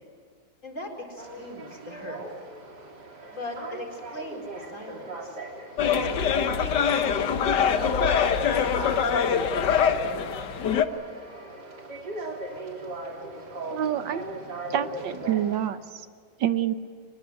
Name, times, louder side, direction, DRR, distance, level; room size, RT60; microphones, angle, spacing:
voice 1, 0.6-2.2 3.3-5.4 6.0-10.3, left 1 dB, 40° left, 1 dB, 4.9 m, -40 dB
sound 1, 1.2-15.7, right 1 dB, 60° right, 3.7 m, -38 dB
sound 2, 5.8-10.8, left 7 dB, 65° left, 1.7 m, -24 dB
voice 2, 13.7-14.2 14.7-16.1 16.4-16.7, right 11 dB, 75° right, 11 dB, 1.6 m, -27 dB
24.5 x 21.0 x 9.9 m, 2.1 s
omnidirectional pair, 2.0 m